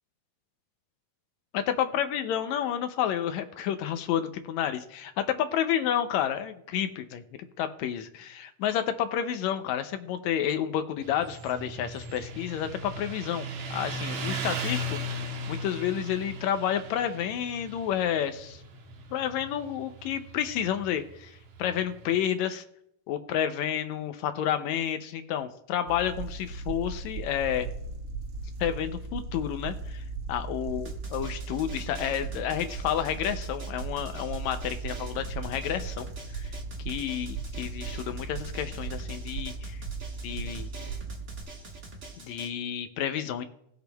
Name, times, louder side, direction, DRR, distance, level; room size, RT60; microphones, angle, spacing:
voice 1, 1.7-7.2 7.6-18.6 19.1-22.6 23.1-27.7 28.6-36.5 36.9-39.8 40.2-40.7 42.2-43.4, left 10 dB, 80° left, 9 dB, 1.7 m, -30 dB
Motorcycle, 11.0-22.1, right 1 dB, 70° right, 2.2 m, -37 dB
sound 1, 25.9-41.4, right 4 dB, 90° right, 1.2 m, -37 dB
Drum, 30.8-42.5, right 2 dB, 50° right, 0.8 m, -45 dB
19.0 x 6.8 x 2.3 m, 0.75 s
omnidirectional pair, 3.6 m